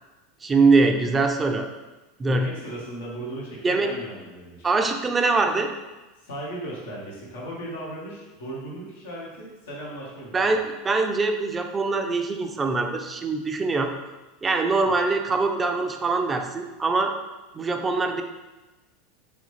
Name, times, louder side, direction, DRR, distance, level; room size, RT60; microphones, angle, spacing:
voice 1, 0.4-1.7 2.2-2.5 3.6-3.9 4.6-5.7 10.3-13.9 14.4-17.1 17.6-18.2, right 3 dB, 20° right, 5 dB, 0.4 m, -23 dB
voice 2, 2.2-4.7 6.2-10.5, right 1 dB, 90° left, -5 dB, 1.4 m, -37 dB
3.7 x 3.4 x 3.1 m, 1.1 s
supercardioid pair, 115°, 0 cm